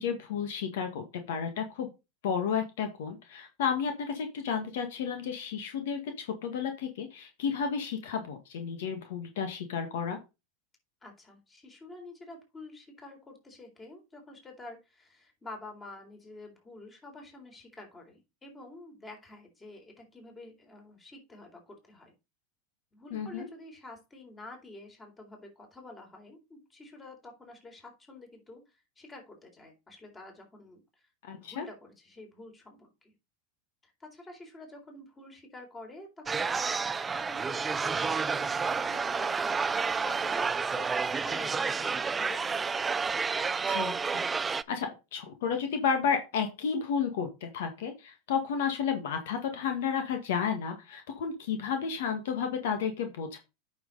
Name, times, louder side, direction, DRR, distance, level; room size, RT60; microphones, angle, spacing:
voice 1, 0.0-1.9 2.2-10.2 23.1-23.5 31.2-31.7 43.7-44.2 44.7-53.4, left 6 dB, 75° left, 6 dB, 1.8 m, -32 dB
voice 2, 11.0-22.1 22.9-33.1 34.0-43.0, left 2 dB, 20° left, 3 dB, 3.9 m, -49 dB
sound 1, 36.3-44.6, right 5 dB, 15° right, 0.4 m, -30 dB
8.8 x 6.3 x 4.1 m, 0.26 s
hypercardioid pair, 115°, 0 cm